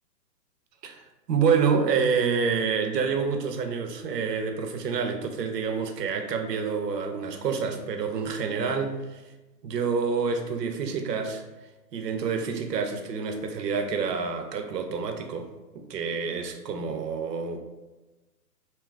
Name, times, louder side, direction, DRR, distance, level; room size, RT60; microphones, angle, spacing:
voice 1, 0.8-9.2 9.6-11.4 11.9-15.5 15.7-17.6, right 5 dB, 75° right, 5 dB, 0.7 m, -27 dB
2.9 x 2.3 x 3.4 m, 1.1 s
hypercardioid pair, 150°, 49 cm